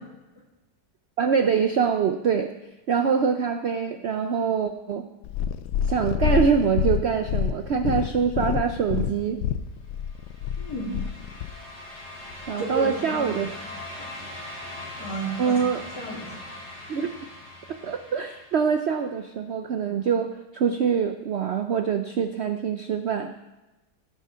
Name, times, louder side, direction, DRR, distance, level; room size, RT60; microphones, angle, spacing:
voice 1, 1.2-2.5 2.9-5.1 5.9-9.4 12.5-13.6 15.4-15.8 16.9-17.1 17.7-23.3, right 6 dB, 65° right, 7 dB, 0.6 m, -24 dB
Purr, 5.2-11.6 12.3-12.4, left 9 dB, 85° left, 1.2 m, -27 dB
sound 1, 10.0-18.9, left 1 dB, 30° left, 3.1 m, -41 dB
voice 2, 10.6-11.0 12.6-13.5 14.0-14.1 15.0-15.6 16.0-16.4, right 2 dB, 70° left, -3 dB, 3.1 m, -32 dB
15.5 x 6.5 x 5.6 m, 1.0 s
omnidirectional pair, 1.8 m